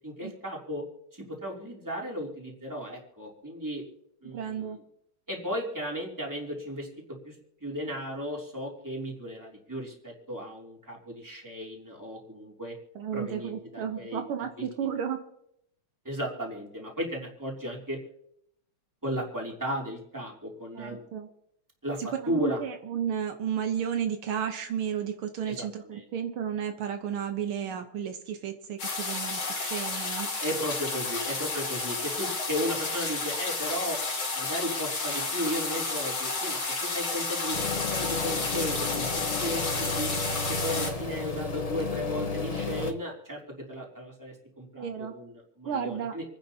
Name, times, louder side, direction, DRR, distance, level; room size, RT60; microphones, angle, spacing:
voice 1, 0.0-0.9 1.1-3.8 4.2-4.8 5.3-7.3 7.6-12.7 13.1-14.2 14.6-14.9 16.0-18.0 19.0-21.0 21.8-22.0 22.3-22.6 25.5-26.0 30.4-34.0 34.3-39.1 39.4-40.1 40.5-46.2, equal, 10° right, -2 dB, 3.0 m, -35 dB
voice 2, 4.3-4.8 13.0-15.2 20.8-21.3 22.0-30.3 44.8-45.1 45.7-46.2, right 8 dB, 80° right, 5 dB, 1.9 m, -33 dB
sound 1, 28.8-40.9, left 3 dB, 70° left, 3.4 m, -31 dB
sound 2, 37.5-42.9, left 4 dB, 35° left, 0.6 m, -32 dB
28.0 x 10.5 x 2.8 m, 0.74 s
omnidirectional pair, 2.4 m